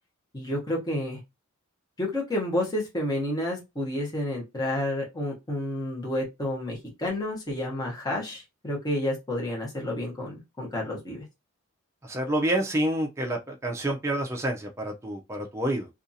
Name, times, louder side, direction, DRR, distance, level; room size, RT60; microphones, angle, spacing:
voice 1, 0.3-1.2 2.0-11.2, left 1 dB, 20° left, 0.9 m, -30 dB
voice 2, 12.0-15.9, right 1 dB, 15° right, 0.4 m, -28 dB
2.6 x 2.3 x 2.6 m
head